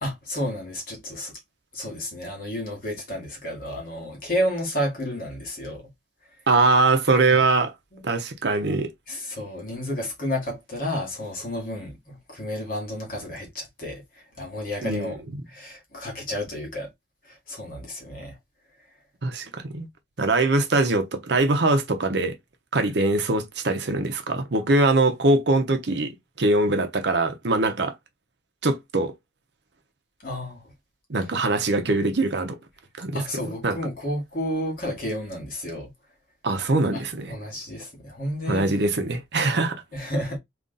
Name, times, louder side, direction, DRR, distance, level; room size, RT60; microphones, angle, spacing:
voice 1, 0.0-1.3 1.7-5.9 7.1-7.4 7.9-8.0 9.1-15.2 15.5-16.9 17.2-18.4 30.2-30.7 33.1-35.9 36.9-38.7 39.9-40.4, equal, 45° left, 2.1 m, -31 dB
voice 2, 6.5-7.7 8.0-8.9 14.8-15.1 19.2-19.9 20.2-22.3 22.7-26.1 26.4-27.9 28.6-29.1 31.1-32.6 33.0-33.2 33.6-33.8 36.4-37.3 38.5-39.8, right 2 dB, 60° right, 0.7 m, -22 dB
3.7 x 2.5 x 3.9 m
head